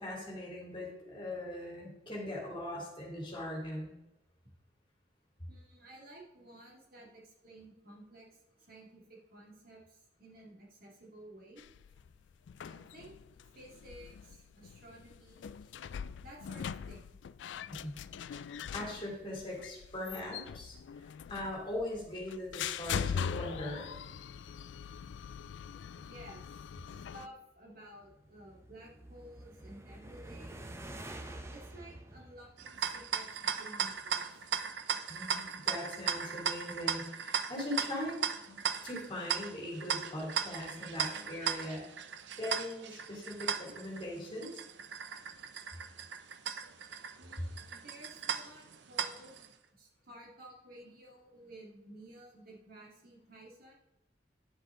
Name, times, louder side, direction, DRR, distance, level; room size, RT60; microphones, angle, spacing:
voice 1, 0.0-3.9 17.7-17.9 18.7-20.7 21.3-23.9 35.1-41.8 42.4-44.5, left 1 dB, 30° left, -2 dB, 3.1 m, -40 dB
voice 2, 5.5-11.6 12.6-13.2 13.5-15.6 16.2-17.1 26.0-26.4 26.9-30.7 31.5-34.5 47.2-53.7, right 1 dB, 55° right, -2 dB, 2.4 m, -54 dB
sound 1, 11.6-27.3, left 7 dB, 80° left, 0.3 m, -42 dB
sound 2, 27.9-33.3, right 1 dB, 15° right, 0.7 m, -48 dB
sound 3, 32.6-49.5, right 7 dB, 70° right, 0.6 m, -37 dB
10.0 x 7.8 x 3.8 m, 0.89 s
head